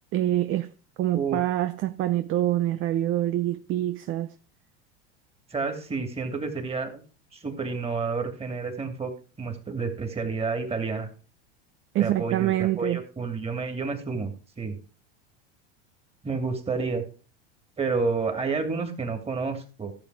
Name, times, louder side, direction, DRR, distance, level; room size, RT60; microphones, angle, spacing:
voice 1, 0.1-0.7 1.0-4.3 11.9-13.0, right 14 dB, 40° right, 0.7 m, -25 dB
voice 2, 5.5-7.0 7.3-9.1 9.4-11.1 12.0-14.3 14.6-14.8 16.2-17.0 17.8-19.9, right 4 dB, 20° right, 2.8 m, -29 dB
14.0 x 7.0 x 4.9 m
hypercardioid pair, 95°, 31 cm